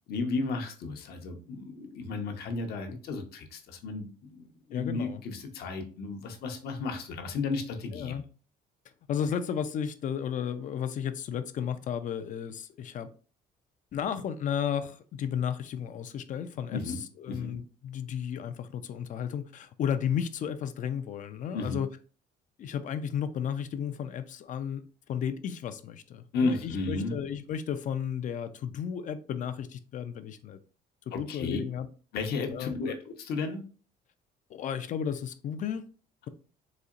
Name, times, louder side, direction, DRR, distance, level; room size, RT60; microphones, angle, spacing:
voice 1, 0.1-8.2 16.7-17.0 17.3-17.5 21.5-21.8 26.3-27.2 31.1-31.6 32.1-33.6, left 3 dB, 70° left, 0.8 m, -33 dB
voice 2, 4.7-5.2 7.9-8.2 9.1-13.1 13.9-21.9 22.6-24.8 25.1-30.6 31.1-31.9 32.5-32.9 34.5-35.8, left 8 dB, 50° left, 0.4 m, -33 dB
4.1 x 2.8 x 2.4 m
cardioid pair, 110°, 17 cm